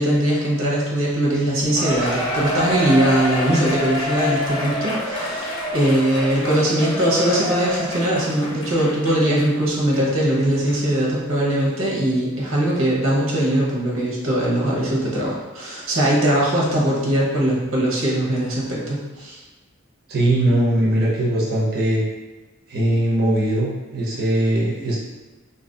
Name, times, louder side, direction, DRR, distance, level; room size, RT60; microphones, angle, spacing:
voice 1, 0.0-19.4, right 1 dB, 90° right, -4 dB, 1.1 m, -21 dB
Cheering, 1.8-9.5 9.9-10.0 10.7-10.8, left 1 dB, 25° left, 0.6 m, -27 dB
voice 2, 20.1-22.0 22.7-25.0, right 1 dB, 50° right, -5 dB, 0.7 m, -20 dB
2.8 x 2.6 x 3.8 m, 1.2 s
head